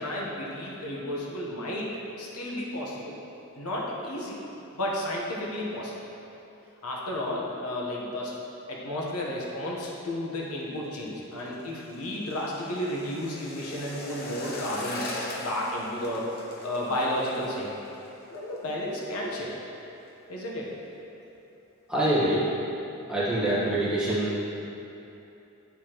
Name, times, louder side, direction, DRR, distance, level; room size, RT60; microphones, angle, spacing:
voice 1, 0.0-1.9 2.2-3.2 3.5-4.4 4.7-6.0 6.8-8.3 8.7-15.0 15.4-17.7 18.3-19.5 20.3-20.8, left 1 dB, 85° left, -3 dB, 1.1 m, -32 dB
sound 1, 10.5-19.5 19.8-20.1 20.4-20.9 21.3-21.4, left 1 dB, 45° left, 0.8 m, -41 dB
voice 2, 21.9-22.5 23.1-24.3, right 1 dB, 5° right, -10 dB, 1.3 m, -25 dB
9.1 x 4.9 x 3.0 m, 2.9 s
head